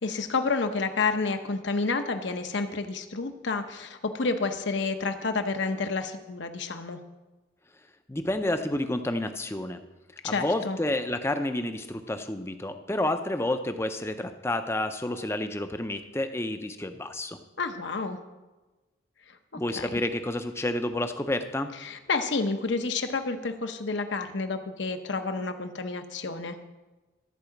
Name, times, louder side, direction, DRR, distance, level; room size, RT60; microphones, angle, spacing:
voice 1, 0.0-7.0 10.2-10.8 17.6-18.2 19.3-19.4 19.8-19.9 21.8-26.6, left 4 dB, 65° left, 7 dB, 0.9 m, -29 dB
voice 2, 8.1-9.8 10.2-17.4 19.5-21.7, left 1 dB, 15° left, 8 dB, 0.5 m, -30 dB
13.5 x 4.9 x 7.1 m, 1.2 s
head